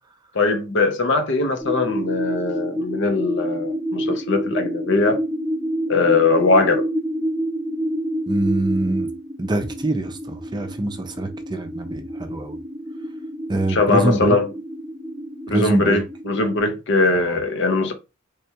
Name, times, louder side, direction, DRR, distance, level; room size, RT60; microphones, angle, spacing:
voice 1, 0.3-5.2 5.9-6.9 13.7-14.5 15.5-17.9, left 3 dB, 60° left, 0.7 m, -20 dB
sound 1, 1.6-16.6, equal, ahead, 0.9 m, -28 dB
voice 2, 8.3-9.1 9.4-12.6 13.5-14.4 15.5-16.0 17.1-17.4, right 2 dB, 20° right, 0.5 m, -24 dB
3.4 x 3.3 x 2.9 m
head